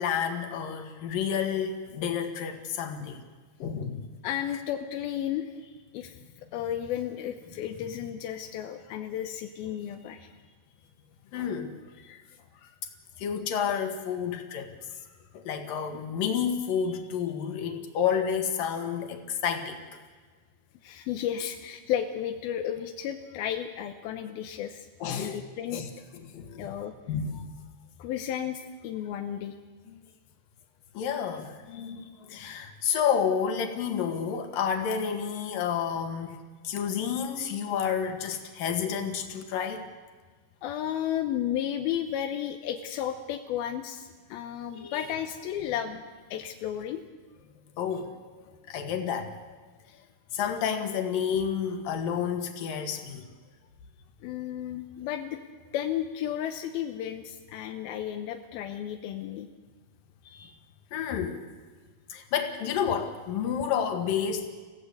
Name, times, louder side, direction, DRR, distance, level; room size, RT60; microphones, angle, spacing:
voice 1, 0.0-3.2 3.6-4.0 11.3-11.8 12.1-12.2 13.2-14.7 15.3-20.0 25.0-25.4 25.7-25.9 26.3-26.7 27.1-27.5 31.0-36.4 36.6-39.9 44.8-45.1 47.8-48.1 48.7-49.4 50.3-53.3 60.9-61.5 62.1-64.5, left 7 dB, 70° left, 5 dB, 3.5 m, -30 dB
voice 2, 4.2-6.2 6.5-10.3 20.8-25.8 26.6-26.9 28.0-29.6 31.7-32.3 40.6-46.0 46.3-47.0 54.2-55.4 55.7-59.5 60.2-60.6, left 10 dB, 85° left, 5 dB, 2.8 m, -33 dB
28.0 x 16.0 x 8.4 m, 1.4 s
omnidirectional pair, 4.3 m